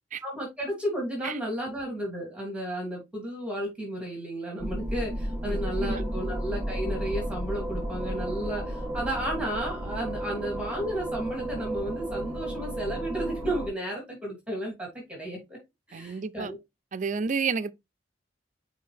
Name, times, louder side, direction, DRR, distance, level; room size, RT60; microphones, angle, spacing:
voice 1, 0.2-15.6 15.9-16.6, right 1 dB, 5° right, 2.8 m, -33 dB
sound 1, 4.6-13.7, right 1 dB, 20° right, 2.6 m, -33 dB
voice 2, 5.5-6.0 15.9-16.5 16.9-17.7, right 5 dB, 45° right, 0.4 m, -31 dB
6.6 x 4.6 x 3.4 m
head